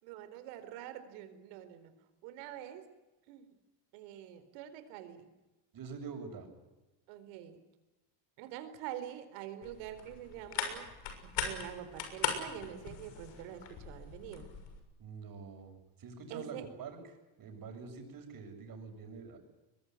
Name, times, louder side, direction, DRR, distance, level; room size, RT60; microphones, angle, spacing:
voice 1, 0.0-1.9 2.2-2.8 3.3-3.5 3.9-5.3 7.1-7.6 8.4-10.9 11.2-14.5 16.3-16.6, right 11 dB, 80° right, 10 dB, 4.1 m, -46 dB
voice 2, 5.7-6.5 15.0-17.0 17.4-19.4, right 5 dB, 45° right, 4 dB, 7.5 m, -45 dB
sound 1, 9.6-14.8, left 7 dB, 70° left, 6.6 m, -40 dB
22.5 x 22.5 x 9.6 m, 1.1 s
supercardioid pair, 105°, 46 cm